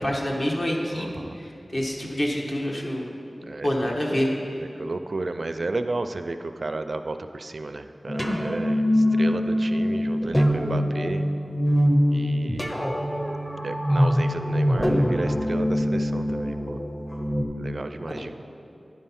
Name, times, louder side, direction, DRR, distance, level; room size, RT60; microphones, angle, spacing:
voice 1, 0.0-3.1 3.6-4.3 18.0-18.1, equal, 50° left, -1 dB, 1.2 m, -27 dB
voice 2, 0.9-1.4 3.5-4.0 4.6-11.2 12.1-12.9 13.6-16.8 17.6-18.3, right 2 dB, 60° right, 8 dB, 0.4 m, -33 dB
sound 1, 8.1-17.4, equal, 15° left, 0.8 m, -23 dB
9.7 x 5.4 x 5.7 m, 2.7 s
wide cardioid pair, 80°, 0 cm